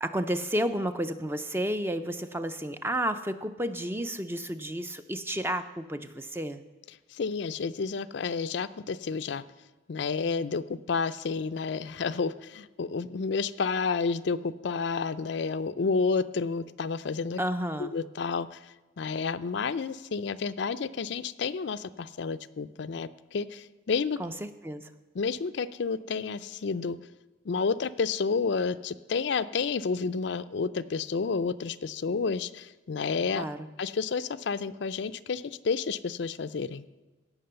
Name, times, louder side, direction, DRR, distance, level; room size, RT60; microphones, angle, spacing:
voice 1, 0.0-6.6 17.4-17.9 24.2-24.9 33.4-33.6, right 1 dB, 10° right, 10 dB, 0.4 m, -31 dB
voice 2, 7.1-9.4 9.9-17.4 17.8-24.2 25.1-27.0 27.4-33.5 33.8-36.8, left 5 dB, 65° left, 13 dB, 0.4 m, -30 dB
17.0 x 6.0 x 6.8 m, 1.2 s
head